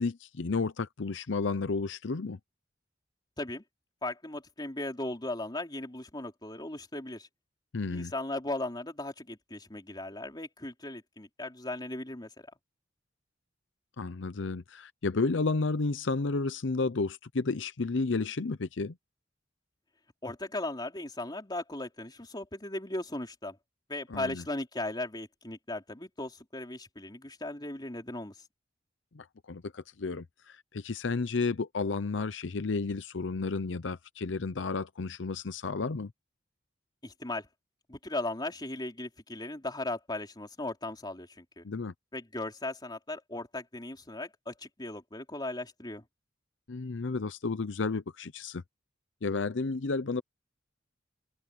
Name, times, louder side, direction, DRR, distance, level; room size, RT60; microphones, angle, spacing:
voice 1, 0.0-2.4 7.7-8.1 14.0-19.0 24.1-24.4 29.1-36.1 41.6-41.9 46.7-48.6 49.2-50.2, left 3 dB, 85° left, 0.7 m, -32 dB
voice 2, 4.0-7.3 7.9-12.3 20.2-23.6 23.9-28.3 37.0-37.5 37.9-41.6 42.1-46.0, left 2 dB, 25° left, 3.8 m, -37 dB
head